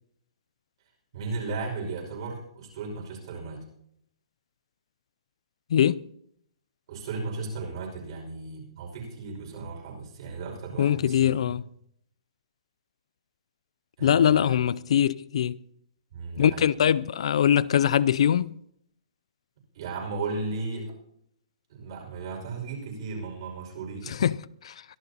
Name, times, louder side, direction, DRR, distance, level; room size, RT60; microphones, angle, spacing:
voice 1, 1.1-3.6 6.9-11.4 14.0-14.5 16.1-16.7 19.7-20.9 21.7-24.1, right 3 dB, 50° right, 5.5 m, -35 dB
voice 2, 5.7-6.0 10.8-11.6 14.0-15.6 16.4-18.5 24.1-24.7, left 9 dB, 65° left, 0.4 m, -22 dB
22.5 x 13.0 x 2.9 m
hypercardioid pair, 155°, 3 cm